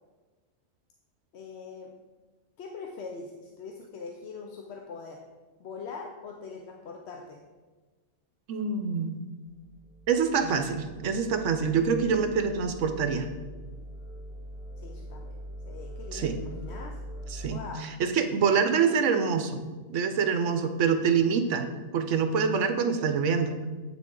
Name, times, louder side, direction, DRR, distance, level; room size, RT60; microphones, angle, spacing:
voice 1, 1.3-1.9 2.6-5.2 5.6-7.4 14.8-15.3 15.7-17.0 17.5-17.9, left 4 dB, 60° left, 2 dB, 0.9 m, -42 dB
voice 2, 8.5-9.2 10.1-13.3 16.1-16.4 17.3-19.6 19.9-21.7 21.9-23.6, right 6 dB, 70° right, 7 dB, 1.0 m, -26 dB
sound 1, 9.5-17.5, equal, 55° right, 2.1 m, -43 dB
8.2 x 6.1 x 3.8 m, 1.3 s
omnidirectional pair, 1.4 m